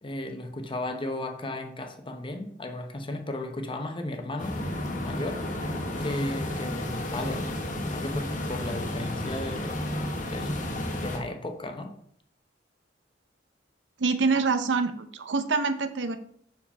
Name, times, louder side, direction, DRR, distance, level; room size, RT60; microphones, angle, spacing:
voice 1, 0.0-4.6 5.0-5.5 6.0-7.5 7.9-9.8 10.3-10.7 11.0-11.9, left 1 dB, 30° left, 5 dB, 0.8 m, -34 dB
sound 1, 4.4-11.2, left 1 dB, 45° left, 1.3 m, -32 dB
voice 2, 14.0-16.2, right 4 dB, 75° right, 9 dB, 0.6 m, -25 dB
5.2 x 4.9 x 5.3 m, 0.66 s
head